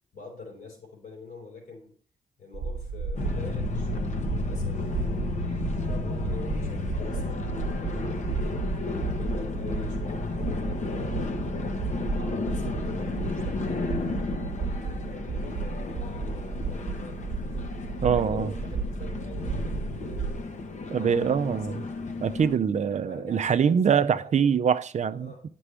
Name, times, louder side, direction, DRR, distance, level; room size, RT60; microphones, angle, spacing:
voice 1, 0.1-1.9 2.4-5.3 5.8-8.0 8.8-11.6 11.9-14.5 15.0-17.7 18.1-20.5 20.8-21.9 23.0-24.5 25.1-25.4, left 3 dB, 80° left, 4.4 m, -45 dB
sound 1, 2.5-20.4, right 4 dB, 70° right, 0.8 m, -33 dB
sound 2, 3.1-22.6, left 3 dB, 55° left, 1.0 m, -33 dB
voice 2, 18.0-18.5 20.9-21.8 22.2-25.3, right 7 dB, 50° right, 0.5 m, -24 dB
9.8 x 6.0 x 3.4 m
cardioid pair, 95°, 15 cm